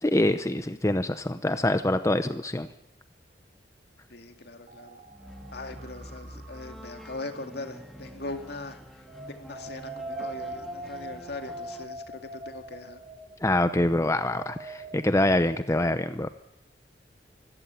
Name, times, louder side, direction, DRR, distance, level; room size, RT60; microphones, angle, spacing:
voice 1, 0.0-2.7 13.4-16.3, left 1 dB, 15° left, 10 dB, 0.8 m, -25 dB
voice 2, 4.1-5.0 5.5-8.8 9.3-12.0 12.3-13.0, left 2 dB, 65° left, 6 dB, 2.2 m, -40 dB
sound 1, 4.7-8.6, right 3 dB, 55° right, 3.1 m, -53 dB
sound 2, 5.1-11.8, equal, ahead, 2.0 m, -47 dB
sound 3, 9.1-15.6, right 2 dB, 35° right, 4.2 m, -41 dB
24.5 x 15.0 x 9.3 m, 0.90 s
head